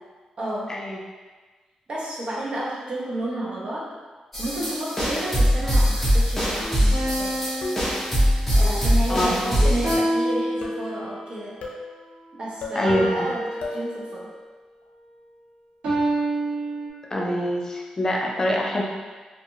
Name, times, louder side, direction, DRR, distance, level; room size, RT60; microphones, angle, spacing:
voice 1, 0.4-0.8 1.9-3.9 4.4-7.5 8.5-11.6 12.3-14.3, right 1 dB, 50° right, -5 dB, 0.7 m, -31 dB
sound 1, 4.3-10.0, equal, 10° left, 0.7 m, -22 dB
sound 2, 6.6-7.0 7.6-8.0 8.6-8.9 9.6-9.9 10.6-10.9 11.6-11.9 12.6-12.9 13.6-13.9, left 2 dB, 80° left, 0.5 m, -34 dB
sound 3, 6.9-8.7 9.8-11.3 12.8-14.4 15.8-16.9, right 1 dB, 80° right, 1.1 m, -28 dB
voice 2, 9.1-9.5 12.7-13.1 17.1-18.8, left 1 dB, 25° left, -2 dB, 0.4 m, -24 dB
2.7 x 2.4 x 2.6 m, 1.4 s
cardioid pair, 100°, 2 cm